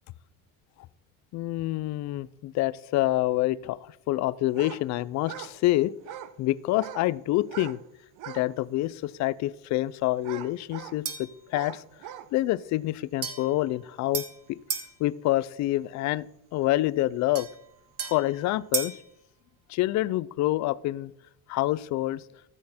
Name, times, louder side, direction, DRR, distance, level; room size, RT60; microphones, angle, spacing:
voice 1, 1.3-5.9 6.4-7.8 8.3-11.8 12.3-14.2 14.5-14.6 15.0-16.3 16.5-17.5 18.0-18.9 19.7-21.1 21.5-22.2, left 16 dB, 45° left, 19 dB, 0.4 m, -27 dB
sound 1, 4.5-4.8 5.2-5.6 6.0-6.4 6.7-7.1 7.4-7.8 8.1-8.5 9.0-9.1 10.2-11.0 11.5-12.3, right 11 dB, 55° right, 0.8 m, -41 dB
sound 2, 11.0-11.4 13.2-14.9 17.3-19.1, right 7 dB, 35° right, 1.4 m, -35 dB
13.5 x 6.4 x 4.3 m, 0.79 s
supercardioid pair, 110°, 39 cm